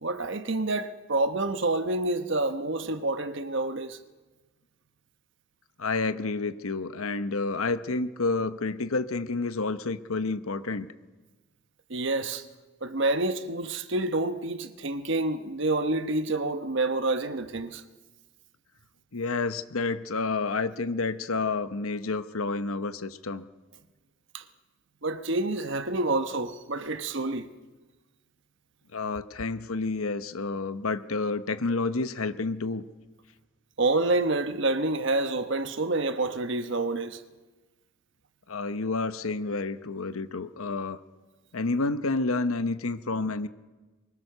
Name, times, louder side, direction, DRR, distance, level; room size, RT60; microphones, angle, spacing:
voice 1, 0.0-4.0 11.9-12.4 12.8-17.8 24.3-24.4 25.0-27.5 33.8-37.2, right 2 dB, 60° right, 1.2 m, -28 dB
voice 2, 5.8-10.9 19.1-23.4 28.9-32.8 38.5-41.0 41.5-43.5, left 3 dB, 85° left, 1.0 m, -29 dB
23.5 x 21.5 x 6.8 m
head